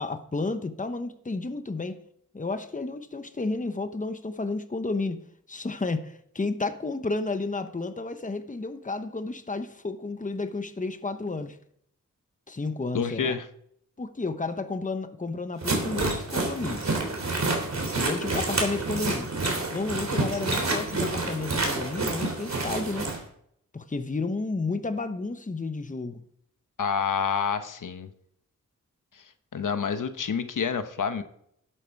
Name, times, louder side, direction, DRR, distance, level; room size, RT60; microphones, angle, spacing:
voice 1, 0.0-2.0 2.3-11.6 12.5-13.4 14.0-16.9 17.9-19.3 19.7-23.1 23.7-26.2, left 3 dB, 25° left, 9 dB, 1.0 m, -32 dB
voice 2, 12.9-13.4 26.8-28.1 29.5-31.2, left 6 dB, 85° left, 9 dB, 1.0 m, -28 dB
sound 1, 15.6-23.2, right 2 dB, 60° right, 3.3 m, -28 dB
11.5 x 9.1 x 4.7 m, 0.67 s
wide cardioid pair, 90°, 31 cm